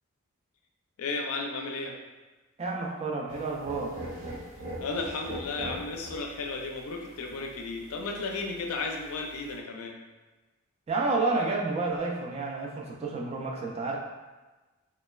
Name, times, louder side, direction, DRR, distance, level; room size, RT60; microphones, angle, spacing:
voice 1, 1.0-2.0 4.8-10.0, left 3 dB, 70° left, 2 dB, 0.4 m, -34 dB
voice 2, 2.6-3.9 10.9-14.0, right 3 dB, 25° right, -1 dB, 0.3 m, -30 dB
sound 1, 3.3-9.6, right 1 dB, 90° right, 1.1 m, -42 dB
3.1 x 2.2 x 2.2 m, 1.2 s
head